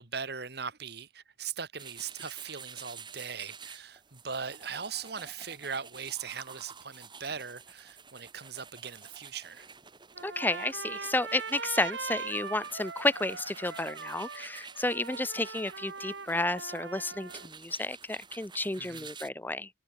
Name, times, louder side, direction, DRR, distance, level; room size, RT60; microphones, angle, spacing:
voice 1, 0.0-9.7 18.8-19.1, right 6 dB, 65° right, 2.2 m, -39 dB
sound 1, 1.8-19.3, right 5 dB, 25° right, 3.2 m, -50 dB
Trumpet, 10.1-17.5, right 4 dB, 90° right, 3.1 m, -41 dB
voice 2, 10.2-19.7, left 2 dB, 10° left, 0.7 m, -31 dB
head